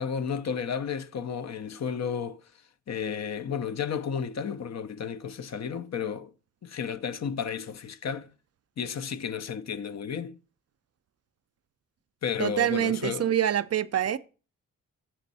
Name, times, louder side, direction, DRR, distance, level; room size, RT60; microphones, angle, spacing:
voice 1, 0.0-2.4 2.9-6.3 6.6-8.3 8.8-10.4 12.2-13.3, left 7 dB, 50° left, 0.6 m, -32 dB
voice 2, 12.4-14.2, right 10 dB, 50° right, 0.4 m, -26 dB
7.4 x 5.2 x 4.1 m
cardioid pair, 60°, 34 cm